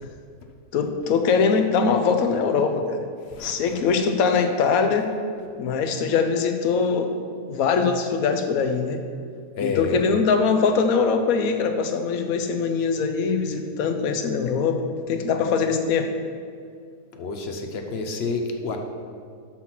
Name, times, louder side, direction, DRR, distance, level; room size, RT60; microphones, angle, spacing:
voice 1, 0.7-3.0 3.4-5.1 5.6-7.2 7.5-9.0 9.6-16.1, left 5 dB, 75° left, 7 dB, 1.1 m, -22 dB
voice 2, 3.3-3.8 9.6-10.1 17.1-18.8, left 3 dB, 55° left, 4 dB, 0.7 m, -29 dB
6.0 x 5.7 x 5.9 m, 2.2 s
omnidirectional pair, 1.6 m